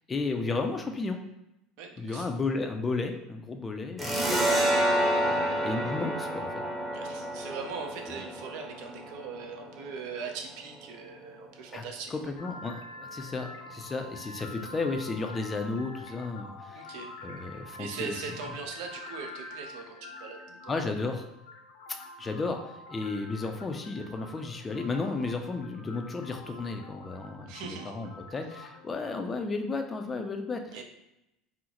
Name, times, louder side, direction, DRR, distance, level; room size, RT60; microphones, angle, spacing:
voice 1, 0.1-1.2 2.0-4.4 5.2-6.5 11.7-11.8 12.1-17.0 17.2-18.2 20.7-21.3 22.2-30.8, left 3 dB, 25° left, 5 dB, 0.4 m, -33 dB
voice 2, 1.8-2.3 6.9-12.1 16.8-17.1 17.8-20.9 27.5-27.9 30.7-30.8, right 5 dB, 70° right, 3 dB, 0.5 m, -40 dB
sound 1, 4.0-11.2, right 1 dB, 10° right, 0.8 m, -29 dB
sound 2, 12.4-29.1, left 2 dB, 90° left, 0.5 m, -46 dB
3.7 x 2.0 x 2.9 m, 0.87 s
supercardioid pair, 105°, 0 cm